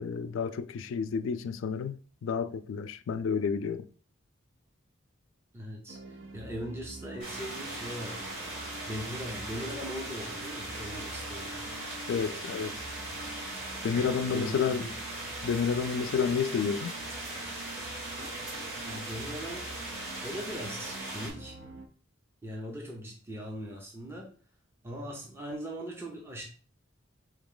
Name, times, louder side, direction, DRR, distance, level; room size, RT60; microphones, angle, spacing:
voice 1, 0.0-3.9 12.1-12.7 13.8-14.9 15.4-17.0, left 6 dB, 80° left, 0.3 m, -30 dB
voice 2, 5.5-8.3 8.9-11.7 13.9-14.9 18.8-19.6 20.2-21.6 22.4-24.3 24.8-26.4, equal, 10° right, 0.6 m, -40 dB
sound 1, 5.9-21.9, right 2 dB, 80° right, 0.6 m, -47 dB
sound 2, 7.2-21.3, right 1 dB, 60° right, 2.2 m, -39 dB
3.7 x 3.0 x 3.8 m
head